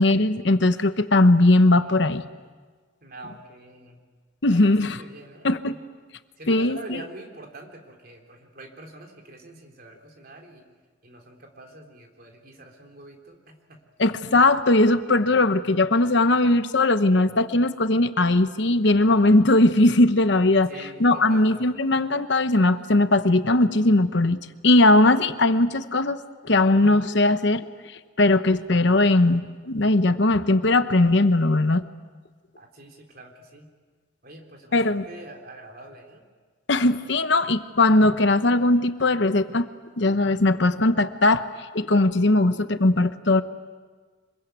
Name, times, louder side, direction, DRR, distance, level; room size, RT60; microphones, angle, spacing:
voice 1, 0.0-2.2 4.4-5.0 5.4-5.7 6.5-7.0 14.0-20.7 21.0-27.6 28.2-31.8 34.7-35.0 36.7-39.7 40.0-41.5 41.7-43.4, left 2 dB, 60° left, 11 dB, 1.0 m, -19 dB
voice 2, 3.0-4.0 4.5-5.8 6.4-10.7 11.0-13.8 20.7-21.8 32.6-33.7 34.2-36.2, right 2 dB, 45° right, 2 dB, 3.6 m, -45 dB
26.0 x 22.5 x 9.3 m, 1.5 s
head